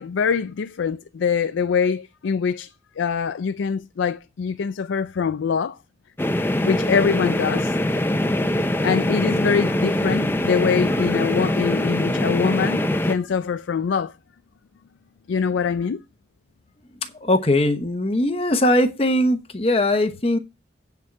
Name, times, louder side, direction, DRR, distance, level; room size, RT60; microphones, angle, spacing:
voice 1, 0.0-5.8 6.6-7.8 8.8-14.1 15.3-16.0, left 6 dB, 90° left, 0.4 m, -24 dB
sound 1, 6.2-13.2, left 1 dB, 10° left, 0.5 m, -23 dB
voice 2, 17.2-20.4, left 1 dB, 30° left, 0.9 m, -20 dB
9.0 x 4.6 x 5.8 m
head